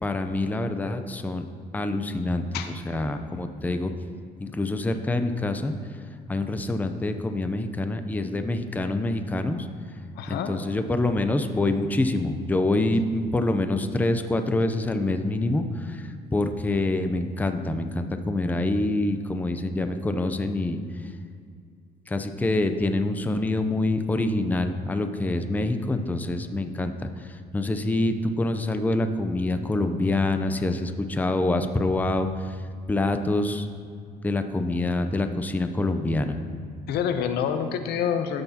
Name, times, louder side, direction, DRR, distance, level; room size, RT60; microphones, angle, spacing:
voice 1, 0.0-1.4 1.7-3.9 4.4-5.7 6.3-9.7 10.3-21.1 22.1-32.6 32.9-33.7 34.2-36.4, left 2 dB, 10° left, 8 dB, 0.5 m, -26 dB
voice 2, 10.2-10.5 36.9-38.4, left 8 dB, 75° left, 8 dB, 0.7 m, -27 dB
13.0 x 7.9 x 2.9 m, 2.2 s
cardioid pair, 110°, 17 cm